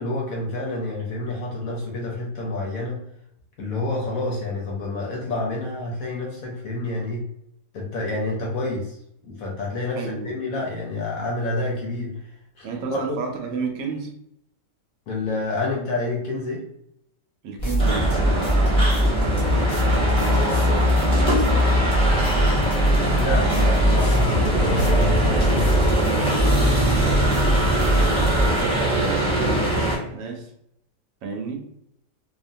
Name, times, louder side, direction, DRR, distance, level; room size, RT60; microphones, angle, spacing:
voice 1, 0.0-3.0 3.6-7.2 7.7-9.0 9.2-12.1 12.6-13.2 15.1-16.6 23.1-26.4, left 2 dB, 65° left, -2 dB, 0.9 m, -28 dB
voice 2, 9.9-10.4 12.6-14.1 17.4-22.6 26.8-30.5 31.2-31.6, right 4 dB, 75° right, 3 dB, 1.2 m, -32 dB
sound 1, 17.6-28.6, left 1 dB, 85° left, 0.3 m, -21 dB
sound 2, 17.8-30.0, right 1 dB, 5° left, 0.6 m, -23 dB
3.1 x 2.2 x 2.6 m, 0.76 s
omnidirectional pair, 1.9 m